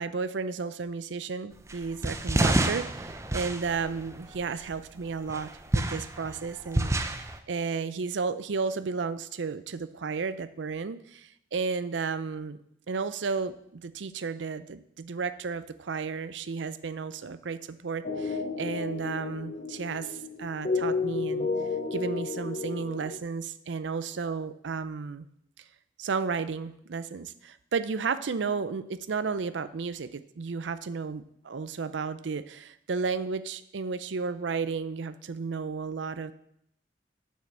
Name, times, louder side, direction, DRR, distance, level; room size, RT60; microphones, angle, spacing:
voice 1, 0.0-12.6 12.9-21.5 21.9-25.3 26.0-36.3, right 5 dB, 90° right, 14 dB, 0.5 m, -33 dB
sound 1, 1.7-4.7 5.3-7.4, right 1 dB, 15° right, 0.5 m, -29 dB
sound 2, 18.0-23.2, left 4 dB, 40° left, 0.7 m, -32 dB
7.3 x 6.0 x 6.8 m, 0.72 s
head